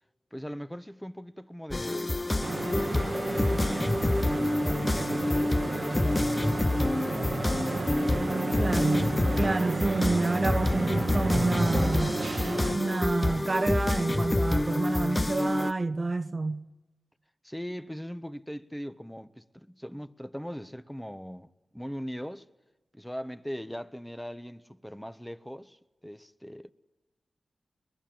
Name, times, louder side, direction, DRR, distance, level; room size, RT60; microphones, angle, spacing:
voice 1, 0.3-2.2 2.5-4.0 4.3-7.6 17.4-22.5 22.9-26.7, equal, 5° left, 1.2 m, -40 dB
sound 1, 1.7-15.7, left 2 dB, 30° left, 0.8 m, -28 dB
sound 2, 2.4-12.8, right 4 dB, 65° right, 1.2 m, -33 dB
voice 2, 8.6-9.1 9.4-12.2 12.7-16.6, right 3 dB, 45° right, 1.0 m, -28 dB
23.0 x 21.5 x 9.0 m
cardioid pair, 45°, 0 cm